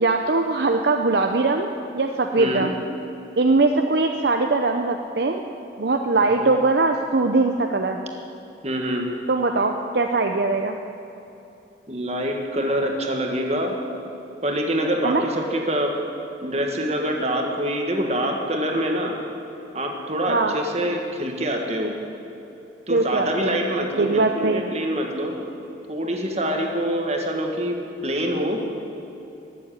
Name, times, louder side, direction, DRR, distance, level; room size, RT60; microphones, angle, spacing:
voice 1, 0.0-2.8 3.4-5.4 5.8-8.0 9.3-10.8 15.0-15.2 20.3-20.6 22.9-23.6 24.0-24.6, right 3 dB, 60° right, 4 dB, 0.6 m, -21 dB
voice 2, 8.6-9.1 11.9-13.7 14.4-15.9 16.4-19.1 19.7-21.9 22.9-25.3 25.9-27.8 28.0-28.6, equal, 35° right, 2 dB, 1.7 m, -25 dB
15.0 x 7.8 x 9.8 m, 3.0 s
head